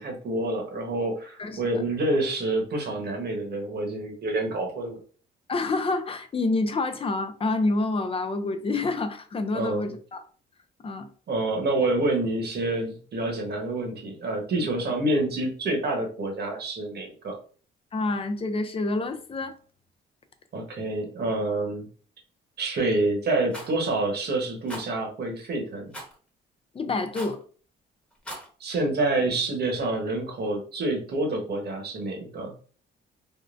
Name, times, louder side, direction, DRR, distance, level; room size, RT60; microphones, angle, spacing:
voice 1, 0.0-5.0 9.5-9.9 11.3-17.4 20.5-21.9 22.6-25.9 28.6-32.5, right 2 dB, 55° right, 1.1 m, -27 dB
voice 2, 1.4-1.8 5.5-10.2 10.8-11.1 17.9-19.5 26.7-27.4, left 3 dB, 30° left, 0.5 m, -28 dB
Rattle, 23.5-23.7 24.7-24.9 25.9-26.1 27.1-27.4 28.1-28.5, equal, 5° left, 1.1 m, -38 dB
3.7 x 2.1 x 2.5 m
cardioid pair, 90°, 20 cm